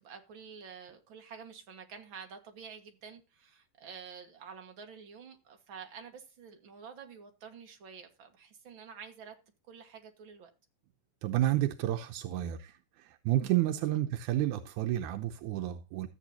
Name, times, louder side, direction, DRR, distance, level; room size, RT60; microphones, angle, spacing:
voice 1, 0.0-9.4 9.7-10.5, right 6 dB, 45° right, 2.1 m, -49 dB
voice 2, 11.2-12.8 13.1-16.1, right 13 dB, 85° right, 2.3 m, -30 dB
14.0 x 8.4 x 2.8 m
omnidirectional pair, 3.4 m